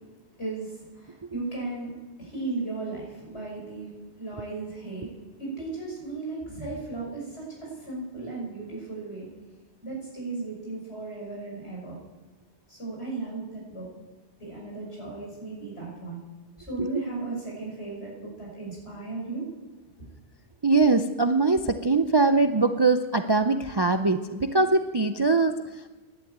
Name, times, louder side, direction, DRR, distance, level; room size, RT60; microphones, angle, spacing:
voice 1, 0.4-5.1 5.4-9.3 9.8-12.0 12.7-13.9 14.4-16.2 16.6-19.4, right 3 dB, 70° left, -3 dB, 6.5 m, -36 dB
voice 2, 20.6-25.9, right 3 dB, 30° right, 8 dB, 0.4 m, -22 dB
11.5 x 10.5 x 8.8 m, 1.2 s
omnidirectional pair, 1.2 m